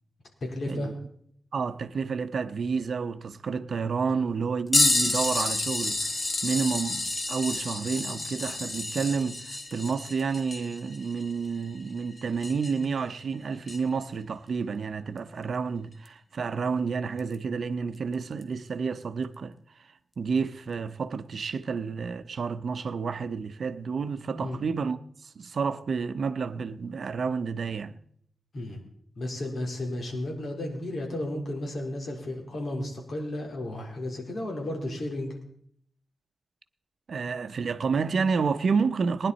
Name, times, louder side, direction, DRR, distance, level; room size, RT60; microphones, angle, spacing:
voice 1, 0.4-0.9 24.4-24.6 28.5-28.8 29.2-35.3, left 1 dB, 65° left, 4.0 m, -33 dB
voice 2, 1.5-6.1 6.4-19.6 20.2-25.0 25.2-28.0 37.1-39.3, right 5 dB, 70° right, 0.8 m, -30 dB
sound 1, 4.7-12.9 13.7-13.8 16.0-16.1 17.2-17.3 18.4-18.5, left 2 dB, 35° left, 1.7 m, -29 dB
19.5 x 10.5 x 4.2 m
wide cardioid pair, 85°, 0 cm